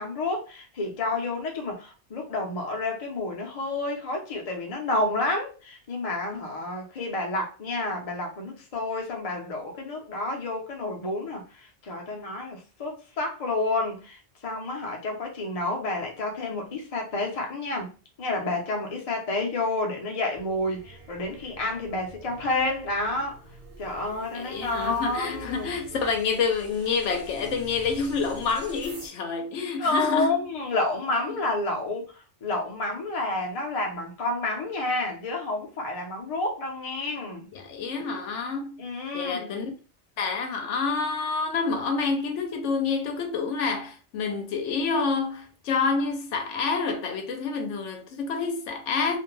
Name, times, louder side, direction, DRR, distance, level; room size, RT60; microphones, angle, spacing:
voice 1, 0.0-23.4 23.8-25.8 29.8-32.0 32.4-37.5 38.8-39.6, left 2 dB, 40° left, 0.6 m, -30 dB
sound 1, 20.3-29.1, right 2 dB, 45° right, 0.9 m, -45 dB
voice 2, 24.3-30.4 31.3-31.4 37.5-38.8 39.1-39.7 40.2-49.2, left 4 dB, 80° left, 0.9 m, -28 dB
2.5 x 2.2 x 3.0 m
omnidirectional pair, 1.2 m